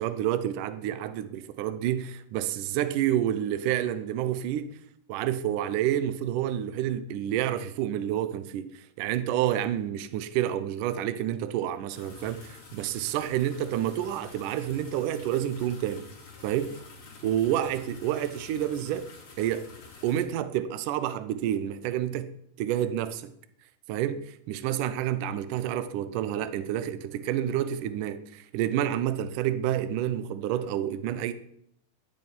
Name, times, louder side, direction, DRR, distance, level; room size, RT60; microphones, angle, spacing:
voice 1, 0.0-4.8 5.1-16.1 16.4-16.8 17.2-19.1 19.4-19.7 20.0-22.3 22.6-23.3 23.9-31.3, right 11 dB, 70° right, 2.2 m, -29 dB
sound 1, 11.9-20.2, left 4 dB, 65° left, 5.8 m, -48 dB
12.5 x 10.5 x 9.6 m
omnidirectional pair, 4.3 m